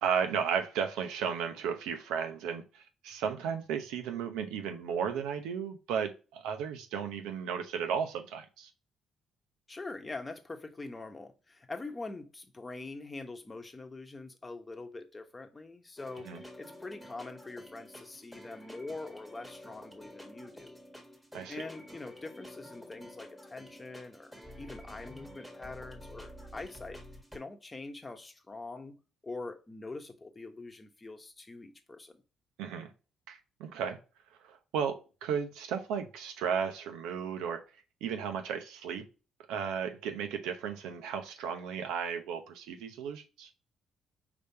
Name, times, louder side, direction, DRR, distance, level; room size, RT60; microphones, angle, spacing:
voice 1, 0.0-8.7 16.2-16.4 21.3-21.6 32.6-32.9 33.3-34.0 34.4-37.6 38.0-39.0 39.5-43.5, right 7 dB, 90° right, 0.8 m, -34 dB
voice 2, 9.7-20.8 21.5-27.0 27.3-29.0 29.2-32.2, left 3 dB, 25° left, 1.0 m, -44 dB
sound 1, 16.0-27.4, left 1 dB, ahead, 1.6 m, -50 dB
5.1 x 3.4 x 2.8 m
supercardioid pair, 70°, 0 cm